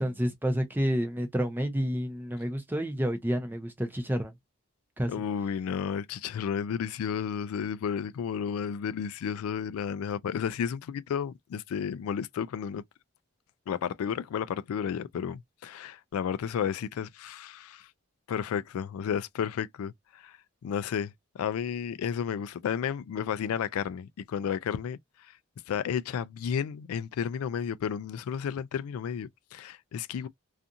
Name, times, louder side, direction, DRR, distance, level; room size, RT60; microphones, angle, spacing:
voice 1, 0.0-4.3 5.0-5.1, equal, 10° right, 0.5 m, -29 dB
voice 2, 5.1-12.8 13.7-17.9 18.3-20.3 20.6-25.0 25.7-30.3, left 7 dB, 90° left, 0.3 m, -32 dB
2.4 x 2.4 x 2.6 m
head